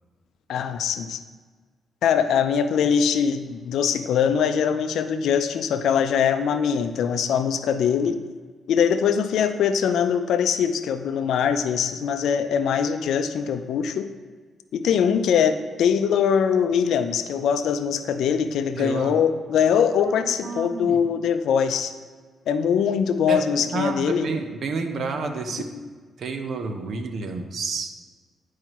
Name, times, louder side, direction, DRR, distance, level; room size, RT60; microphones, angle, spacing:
voice 1, 0.5-1.2 2.0-8.2 8.7-14.1 14.7-21.9 22.5-24.3, left 7 dB, 80° left, 9 dB, 0.5 m, -22 dB
voice 2, 18.8-19.1 20.0-21.0 23.3-25.7 26.2-27.9, right 4 dB, 65° right, 6 dB, 0.8 m, -30 dB
11.0 x 4.7 x 3.0 m, 1.5 s
cardioid pair, 75°, 0 cm